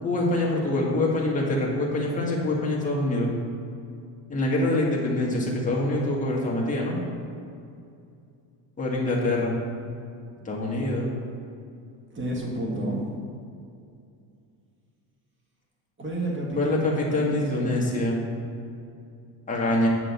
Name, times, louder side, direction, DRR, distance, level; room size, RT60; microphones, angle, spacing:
voice 1, 0.0-3.3 4.3-7.0 8.8-9.5 10.4-11.1 16.5-18.2 19.5-19.9, left 2 dB, 15° left, -3 dB, 1.7 m, -25 dB
voice 2, 12.1-13.0 16.0-17.8, right 1 dB, 25° right, -2 dB, 1.8 m, -31 dB
8.8 x 3.7 x 7.0 m, 2.5 s
cardioid pair, 140°, 44 cm